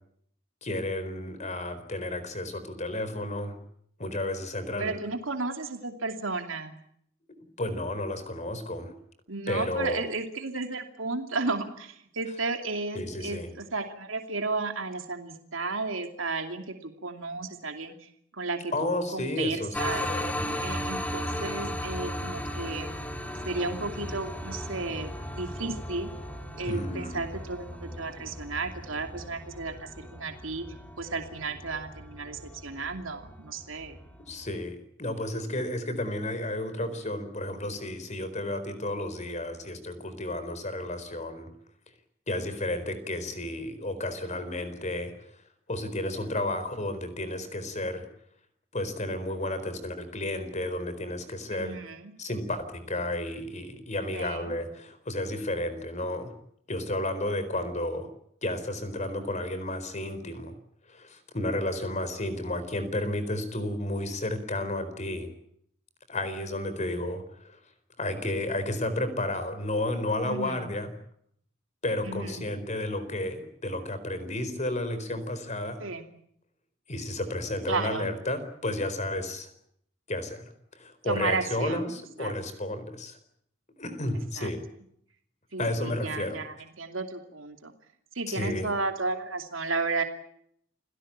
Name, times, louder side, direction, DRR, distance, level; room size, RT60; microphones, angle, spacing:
voice 1, 0.6-3.5 4.0-4.9 7.6-8.9 9.5-10.0 12.9-13.5 18.7-20.7 26.7-27.2 34.3-41.5 42.3-45.4 45.7-48.1 48.7-51.8 52.2-56.3 56.7-58.1 58.4-60.6 60.9-65.3 66.1-67.6 68.0-70.9 71.8-75.8 76.9-79.5 80.1-83.2 83.8-84.6 85.6-86.4 88.3-88.7, left 1 dB, 35° left, 11 dB, 4.3 m, -32 dB
voice 2, 4.8-6.8 9.3-20.0 20.6-22.9 23.4-26.1 26.6-30.6 31.0-34.0 51.5-52.1 54.1-54.5 70.2-70.7 72.0-72.5 75.8-76.1 77.7-78.1 81.1-81.9 82.2-82.3 84.4-84.5 85.5-87.7 88.1-90.0, right 3 dB, 85° right, 5 dB, 2.7 m, -33 dB
sound 1, 19.7-34.6, equal, 10° left, 2.4 m, -37 dB
28.5 x 18.0 x 8.8 m, 0.69 s
head